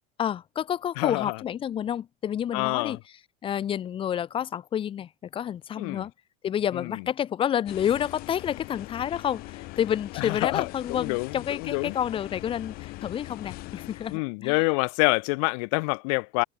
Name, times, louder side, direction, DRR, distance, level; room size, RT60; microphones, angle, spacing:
voice 1, 0.2-3.0 3.4-6.1 6.4-14.6, left 9 dB, 30° left, 1.2 m, -29 dB
voice 2, 1.0-1.4 2.5-3.0 5.8-6.1 6.7-7.0 10.2-12.0 14.1-16.4, left 33 dB, 70° left, 0.4 m, -27 dB
sound 1, 7.7-14.2, left 20 dB, 50° left, 2.4 m, -41 dB
cardioid pair, 150°, 19 cm